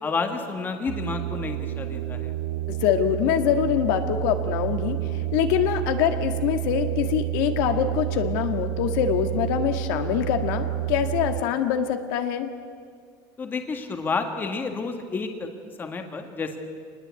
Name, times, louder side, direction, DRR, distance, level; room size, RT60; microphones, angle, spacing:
voice 1, 0.0-2.3 13.4-15.5 15.8-16.6, left 4 dB, 20° left, 5 dB, 1.7 m, -30 dB
sound 1, 0.9-11.4, right 13 dB, 90° right, 1.6 m, -29 dB
voice 2, 2.7-12.5, left 9 dB, 70° left, 6 dB, 1.8 m, -24 dB
25.0 x 20.0 x 8.3 m, 2.1 s
cardioid pair, 165°, 11 cm